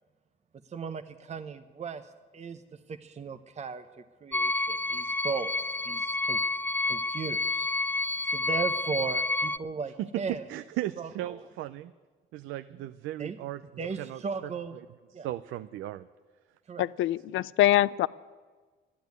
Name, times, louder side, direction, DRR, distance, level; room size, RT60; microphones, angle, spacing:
voice 1, 0.6-5.5 5.8-6.4 6.9-7.7 7.9-10.4 11.0-11.4 13.2-13.4 13.8-14.8 15.1-15.3 16.7-16.9, right 5 dB, 35° right, 8 dB, 0.7 m, -37 dB
sound 1, 4.3-9.6, left 2 dB, 10° left, 0.4 m, -29 dB
voice 2, 10.0-11.9 12.3-13.6 14.0-14.5 15.2-16.1, right 14 dB, 90° right, 12 dB, 0.5 m, -36 dB
voice 3, 16.8-18.1, left 14 dB, 80° left, 19 dB, 0.4 m, -24 dB
12.5 x 10.0 x 9.4 m, 1.4 s
cardioid pair, 90°, 20 cm